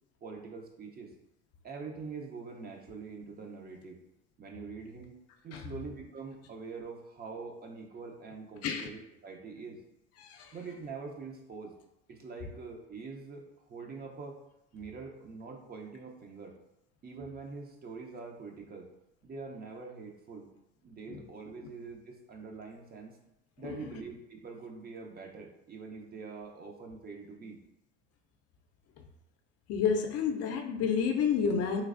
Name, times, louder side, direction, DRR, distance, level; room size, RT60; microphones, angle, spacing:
voice 1, 0.2-1.1 1.6-4.0 4.4-5.2 5.4-9.8 10.5-11.7 12.1-14.4 14.7-16.5 17.0-18.9 19.2-20.5 20.8-23.2 23.6-27.6, right 4 dB, 30° right, 2 dB, 0.6 m, -44 dB
voice 2, 10.2-10.5 21.1-21.2 23.6-23.8 29.7-31.8, left 6 dB, 50° left, 3 dB, 0.5 m, -30 dB
3.2 x 3.1 x 2.4 m, 0.88 s
supercardioid pair, 85°, 32 cm